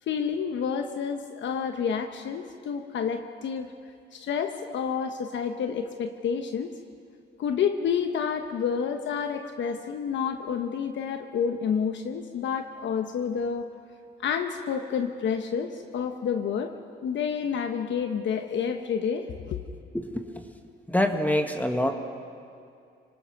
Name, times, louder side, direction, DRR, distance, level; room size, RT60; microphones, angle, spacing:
voice 1, 0.1-3.7 4.1-6.7 7.4-13.7 14.2-16.7 17.0-19.6, left 7 dB, 70° left, 6 dB, 1.0 m, -29 dB
voice 2, 19.9-20.5 20.9-21.9, left 1 dB, 10° left, 5 dB, 1.5 m, -26 dB
26.0 x 19.5 x 6.0 m, 2.3 s
cardioid pair, 90°, 20 cm